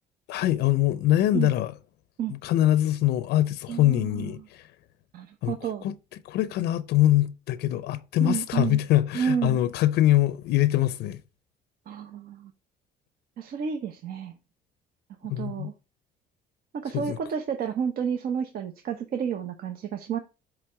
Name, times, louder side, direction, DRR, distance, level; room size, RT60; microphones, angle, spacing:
voice 1, 0.3-1.7 2.3-4.7 5.4-5.9 6.2-11.2 15.3-15.7 16.9-17.2, left 14 dB, 75° left, 0.5 m, -23 dB
voice 2, 3.7-4.3 5.1-5.8 8.2-8.8 9.1-9.6 11.9-12.5 13.4-14.4 15.2-15.7 16.7-20.2, right 7 dB, 60° right, 0.8 m, -30 dB
8.1 x 3.3 x 4.5 m
cardioid pair, 110°, 17 cm